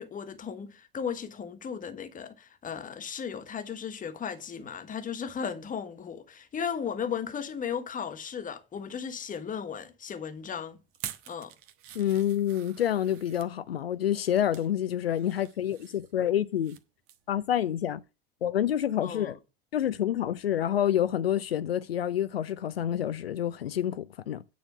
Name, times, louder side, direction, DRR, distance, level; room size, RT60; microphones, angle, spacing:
voice 1, 0.0-10.8 11.3-11.5 19.0-19.4, left 7 dB, 30° left, 1.4 m, -36 dB
sound 1, 10.9-13.5 14.1-14.7 15.1-16.8 17.1-17.3 17.7-17.8, right 11 dB, 50° right, 1.2 m, -46 dB
voice 2, 11.9-16.8 17.3-18.0 18.4-19.4 19.7-24.5, left 10 dB, 85° left, 0.5 m, -28 dB
9.1 x 4.3 x 6.9 m
figure-of-eight pair, 75°, 29 cm